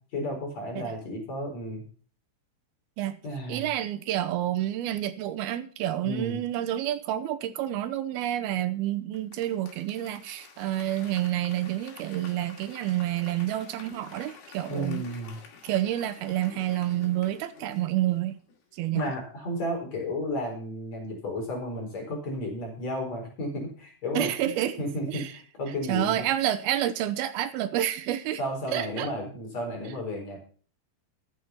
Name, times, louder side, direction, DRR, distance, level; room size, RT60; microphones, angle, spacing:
voice 1, 0.1-1.8 3.2-3.7 6.0-6.4 14.7-15.4 18.9-24.5 24.8-26.2 28.4-30.4, left 1 dB, 45° left, 5.2 m, -33 dB
voice 2, 3.5-15.0 15.6-18.4 18.7-19.1 24.1-24.8 25.1-25.3 25.9-28.4 28.7-29.1, right 13 dB, 80° right, 2.7 m, -29 dB
Applause / Crowd, 9.1-18.6 18.9-19.0, left 6 dB, 75° left, 4.2 m, -50 dB
14.5 x 8.2 x 5.7 m
omnidirectional pair, 4.5 m